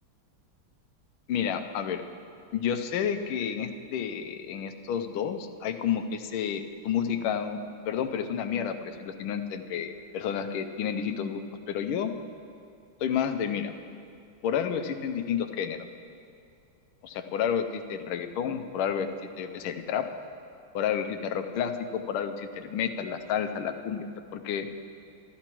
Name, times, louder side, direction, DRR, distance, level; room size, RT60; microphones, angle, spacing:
voice 1, 1.3-2.0 2.5-7.6 7.8-12.1 13.0-13.7 14.4-15.9 17.0-20.1 20.7-24.1 24.3-24.7, left 8 dB, 90° left, 7 dB, 1.5 m, -30 dB
14.5 x 13.0 x 3.0 m, 2.4 s
omnidirectional pair, 2.3 m